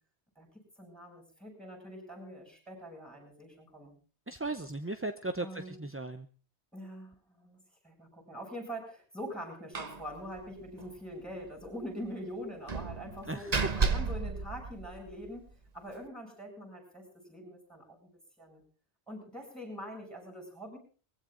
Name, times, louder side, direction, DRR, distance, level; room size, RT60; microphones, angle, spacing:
voice 1, 0.8-3.9 5.4-5.9 6.7-18.1 18.4-18.6 19.1-20.8, equal, ahead, 2 dB, 7.8 m, -44 dB
voice 2, 4.3-6.3 13.3-13.5, right 2 dB, 15° right, 9 dB, 0.5 m, -37 dB
Slam, 9.7-10.1 10.3-10.4 10.8-10.9 12.7-15.3, right 4 dB, 40° right, 1.1 m, -32 dB
22.0 x 15.5 x 3.9 m, 0.39 s
omnidirectional pair, 1.1 m